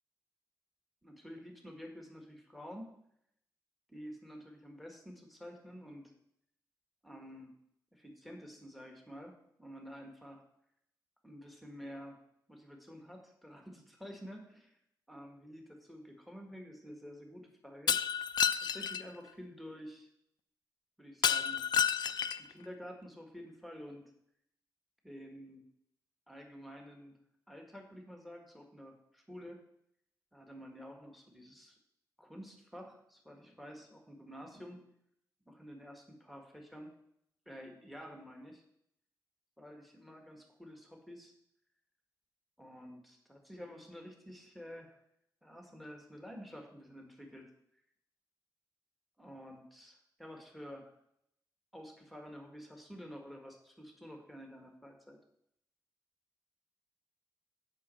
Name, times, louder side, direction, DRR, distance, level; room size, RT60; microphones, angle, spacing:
voice 1, 1.0-2.9 3.9-6.1 7.0-7.5 7.9-10.4 11.2-12.2 12.5-14.8 15.1-18.0 18.6-20.1 21.0-21.6 22.4-24.0 25.0-25.6 26.3-27.1 27.5-29.6 30.3-31.8 32.2-34.8 35.4-36.9 37.4-38.6 39.6-41.3 42.6-45.0 45.4-47.5 49.2-50.9 51.7-55.2, equal, ahead, 2 dB, 1.6 m, -50 dB
Shatter, 17.9-19.0 21.2-22.5, left 8 dB, 75° left, 0.4 m, -30 dB
8.3 x 5.3 x 7.6 m, 0.75 s
wide cardioid pair, 105°, 7 cm